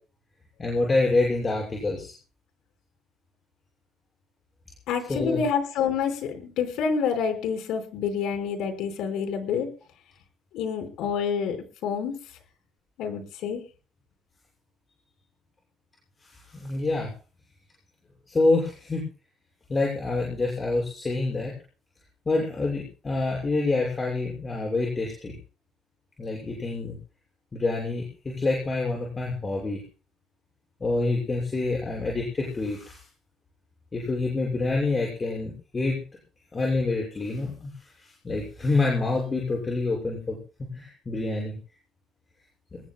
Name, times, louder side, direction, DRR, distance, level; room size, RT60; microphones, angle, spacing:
voice 1, 0.6-2.1 5.1-5.4 16.2-17.1 18.3-19.0 19.7-21.5 22.3-25.4 26.2-27.0 27.5-29.8 30.8-33.0 33.9-36.0 36.5-41.6 42.7-42.8, left 3 dB, 20° left, -1 dB, 6.9 m, -27 dB
voice 2, 4.9-9.7 10.5-11.6 11.8-12.2 13.0-13.6, left 6 dB, 75° left, 6 dB, 5.3 m, -28 dB
24.5 x 21.0 x 2.4 m, 0.38 s
cardioid pair, 155°, 0 cm